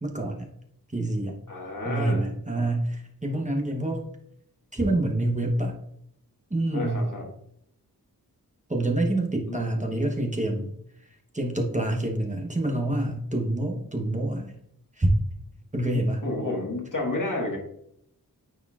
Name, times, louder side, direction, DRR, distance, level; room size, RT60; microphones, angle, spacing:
voice 1, 0.0-0.5 0.9-1.4 1.8-4.0 4.7-5.7 6.5-7.1 8.7-10.7 11.3-14.5 15.0-15.1 15.7-16.3, right 1 dB, 20° right, 1 dB, 1.0 m, -27 dB
voice 2, 1.5-2.3 6.7-7.3 9.5-10.0 16.2-17.6, left 2 dB, 55° left, 0 dB, 1.7 m, -31 dB
9.2 x 4.3 x 2.4 m, 0.72 s
wide cardioid pair, 55°, 37 cm